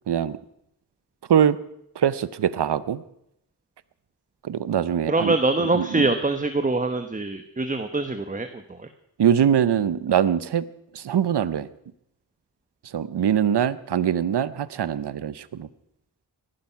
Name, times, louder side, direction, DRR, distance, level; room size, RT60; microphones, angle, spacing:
voice 1, 0.1-0.4 1.3-1.6 2.0-3.0 4.4-5.3 5.7-6.1 9.2-10.6 10.9-11.7 12.9-15.7, right 9 dB, 80° right, 17 dB, 0.8 m, -22 dB
voice 2, 5.1-8.9, right 2 dB, 20° right, 8 dB, 1.1 m, -24 dB
18.5 x 11.5 x 5.8 m, 0.78 s
wide cardioid pair, 60°, 40 cm